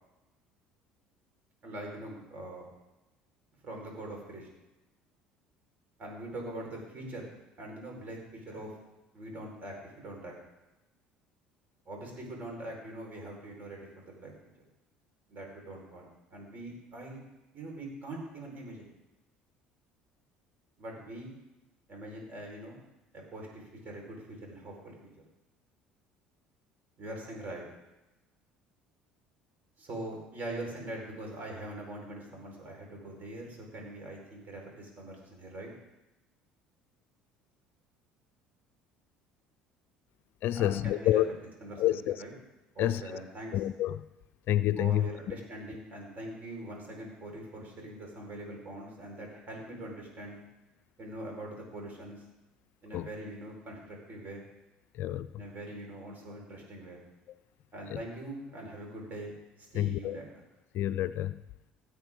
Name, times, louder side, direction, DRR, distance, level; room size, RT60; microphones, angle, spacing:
voice 1, 1.6-2.7 3.6-4.5 6.0-7.3 7.6-8.8 9.1-10.3 11.9-14.3 15.3-17.2 17.5-18.9 20.8-21.3 21.9-22.8 23.1-25.1 27.0-27.6 29.8-35.7 40.5-41.2 41.6-42.3 42.7-43.6 44.8-50.4 51.0-52.2 52.8-54.4 55.4-57.0 57.7-59.3 59.6-60.3, right 1 dB, 40° right, 0 dB, 4.7 m, -43 dB
voice 2, 40.4-41.3 41.8-42.2 42.8-43.0 43.5-44.1 44.5-45.1 52.9-53.1 55.0-55.3 57.9-58.0 59.7-60.2 60.7-61.4, left 13 dB, 55° left, 15 dB, 0.4 m, -28 dB
16.5 x 8.2 x 3.8 m, 1.0 s
hypercardioid pair, 60°, 4 cm